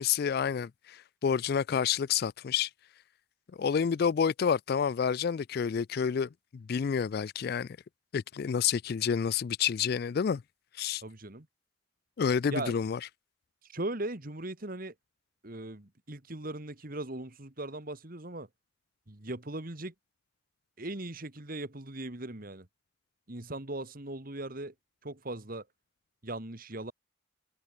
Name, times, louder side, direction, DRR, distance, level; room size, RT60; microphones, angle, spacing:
voice 1, 0.0-2.7 3.6-7.7 8.1-10.4 10.8-11.0 12.2-13.0, left 7 dB, 45° left, 0.3 m, -29 dB
voice 2, 11.0-11.5 12.5-12.8 13.7-14.9 15.4-18.5 19.1-19.9 20.8-22.7 23.3-24.7 25.0-25.7 26.2-26.9, right 2 dB, 45° right, 1.9 m, -39 dB
head